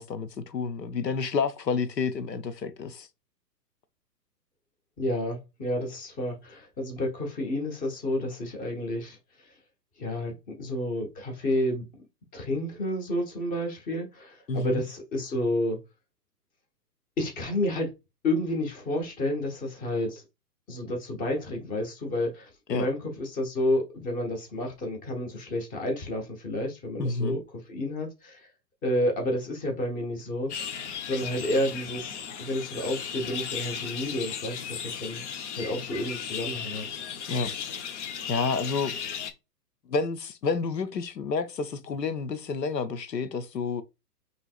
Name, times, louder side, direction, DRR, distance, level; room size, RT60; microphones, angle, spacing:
voice 1, 0.0-3.1 14.5-14.8 22.7-22.9 27.0-27.4 37.3-37.5 38.3-38.9 39.9-43.8, left 4 dB, 85° left, 0.8 m, -29 dB
voice 2, 5.0-9.5 10.0-11.8 12.3-15.8 17.2-17.9 18.2-20.2 20.7-28.5 28.8-30.5 31.0-35.2 35.6-37.0, left 1 dB, 15° left, 1.1 m, -30 dB
sound 1, 30.5-39.3, left 7 dB, 45° left, 0.8 m, -36 dB
5.5 x 3.1 x 2.4 m
figure-of-eight pair, 120°, 49 cm